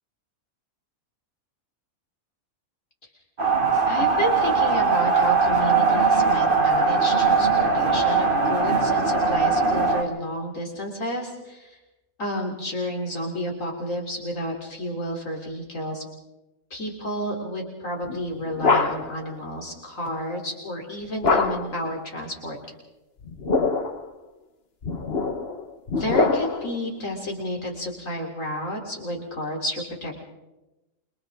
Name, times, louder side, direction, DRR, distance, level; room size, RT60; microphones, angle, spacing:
sound 1, 3.4-10.0, right 4 dB, 40° right, 2.0 m, -20 dB
voice 1, 3.9-11.8 12.2-16.0 16.7-22.6 25.9-30.2, equal, 65° left, 0 dB, 3.8 m, -31 dB
sound 2, 18.1-19.2 21.2-21.8 23.2-24.0 24.8-26.8, left 3 dB, 45° left, 1.6 m, -24 dB
29.0 x 24.5 x 3.7 m, 1.0 s
omnidirectional pair, 1.4 m